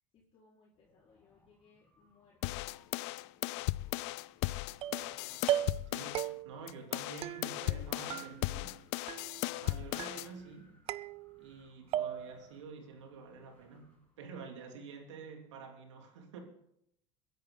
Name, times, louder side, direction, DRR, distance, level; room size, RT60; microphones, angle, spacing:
voice 1, 0.1-3.6, left 4 dB, 40° left, -7 dB, 4.7 m, -67 dB
Wind, 0.7-14.4, left 2 dB, 15° left, 7.7 m, -68 dB
sound 1, 2.4-6.3 6.7-10.3, left 20 dB, 70° left, 0.4 m, -36 dB
sound 2, 4.8-5.1 5.5-5.9 6.1-6.7 7.2-7.8 8.1-8.8 9.1-9.6 10.0-10.5 10.9-11.6 11.9-12.5, right 12 dB, 40° right, 0.5 m, -37 dB
voice 2, 5.1-8.8 9.6-10.7 11.4-16.4, right 5 dB, 85° right, 2 dB, 3.4 m, -49 dB
22.0 x 10.5 x 3.9 m, 0.74 s
hypercardioid pair, 95°, 15 cm